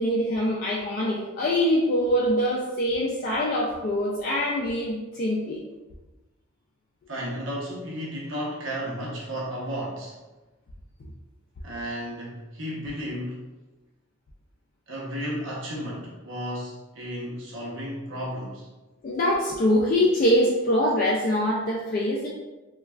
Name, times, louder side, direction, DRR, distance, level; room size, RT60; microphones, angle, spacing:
voice 1, 0.0-5.6 19.0-22.3, equal, 45° left, -5 dB, 0.3 m, -24 dB
voice 2, 7.1-10.2 11.6-13.4 14.9-18.7, equal, 65° right, -5 dB, 0.8 m, -33 dB
3.1 x 2.3 x 2.3 m, 1.1 s
head